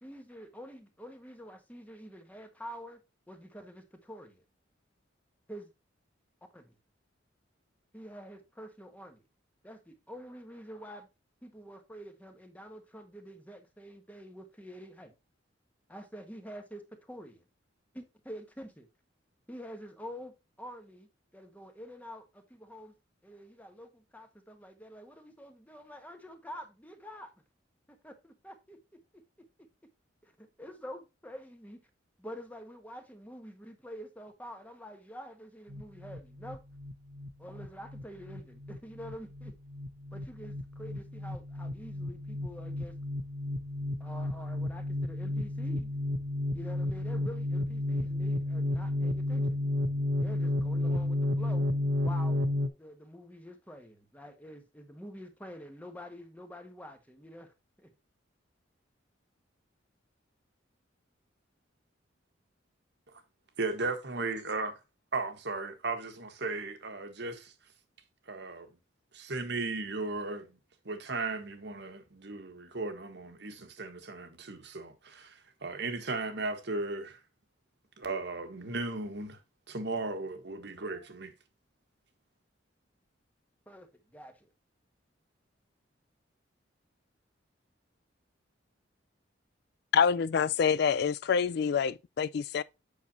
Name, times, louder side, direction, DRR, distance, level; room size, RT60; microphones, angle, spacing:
voice 1, 0.0-3.0 3.3-4.4 5.5-5.7 6.5-6.8 7.9-9.2 9.6-11.1 11.4-15.1 15.9-17.4 17.9-18.9 19.5-21.1 21.3-22.9 23.2-27.3 27.9-29.5 30.2-31.8 32.2-36.6 37.4-39.5 40.1-42.9 44.0-45.9 46.5-49.6 50.2-51.7 52.0-52.4 52.8-57.9 83.7-84.5, equal, 10° left, 1.3 m, -47 dB
sound 1, 35.7-52.7, left 1 dB, 85° right, 1.0 m, -32 dB
voice 2, 63.6-64.8 65.1-67.5 68.3-68.7 69.1-70.6 70.8-77.2 78.0-79.4 79.7-81.3, right 3 dB, 60° right, 1.5 m, -36 dB
voice 3, 89.9-92.6, left 6 dB, 55° left, 0.3 m, -26 dB
8.4 x 6.1 x 2.8 m
head